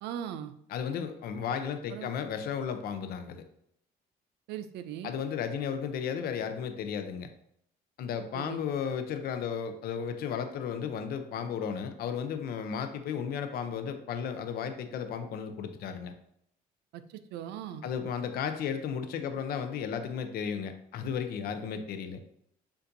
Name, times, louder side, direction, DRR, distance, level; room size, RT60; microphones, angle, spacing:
voice 1, 0.0-0.5 1.9-2.1 4.5-5.1 8.3-8.6 16.9-17.8, right 9 dB, 80° right, 11 dB, 0.4 m, -39 dB
voice 2, 0.7-3.4 5.0-7.3 8.0-16.1 17.8-22.2, left 7 dB, 65° left, 9 dB, 0.5 m, -34 dB
6.8 x 2.6 x 2.6 m, 0.72 s
cardioid pair, 110°, 17 cm